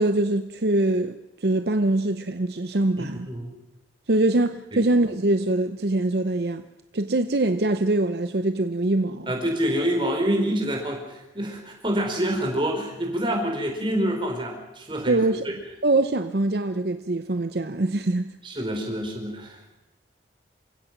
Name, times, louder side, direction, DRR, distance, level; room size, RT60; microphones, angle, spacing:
voice 1, 0.0-3.3 4.1-6.7 6.9-9.3 15.1-15.5 15.8-18.3, right 2 dB, 60° right, 0.8 m, -23 dB
voice 2, 3.0-3.5 4.7-4.9 9.3-15.2 18.4-19.8, equal, 25° right, 4.4 m, -27 dB
28.0 x 16.5 x 6.0 m
head